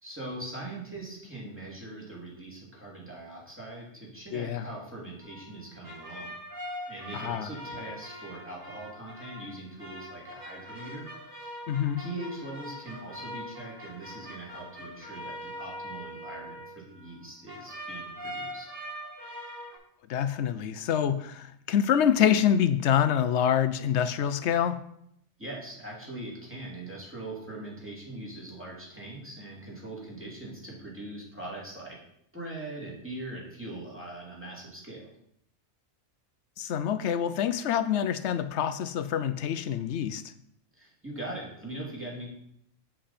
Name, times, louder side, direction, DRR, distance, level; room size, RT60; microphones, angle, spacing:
voice 1, 0.0-6.4 6.9-11.1 11.4-11.6 12.0-18.7 25.4-32.0 32.3-35.0 40.7-42.3, right 2 dB, 10° right, -4 dB, 2.6 m, -41 dB
voice 2, 4.3-4.6 7.1-7.5 11.7-12.0 20.1-24.8 36.6-40.2, left 9 dB, 65° left, 13 dB, 0.8 m, -26 dB
sound 1, 5.2-17.2 17.5-19.8, equal, 85° right, 3.7 m, -42 dB
7.7 x 7.4 x 4.3 m, 0.73 s
omnidirectional pair, 1.3 m